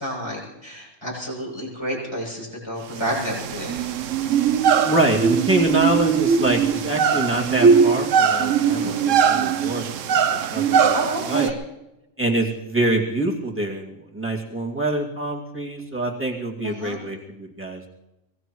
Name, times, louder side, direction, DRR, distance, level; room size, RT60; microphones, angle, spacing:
voice 1, 0.0-3.7 8.8-8.9 10.9-11.6 16.6-17.0, equal, 20° left, -4 dB, 7.5 m, -30 dB
sound 1, 2.9-11.5, right 7 dB, 75° right, 1.1 m, -20 dB
voice 2, 4.8-9.8 10.5-10.9 11.2-11.5 12.2-17.9, right 2 dB, 10° right, -2 dB, 2.2 m, -25 dB
24.0 x 19.0 x 3.1 m, 0.95 s
omnidirectional pair, 1.3 m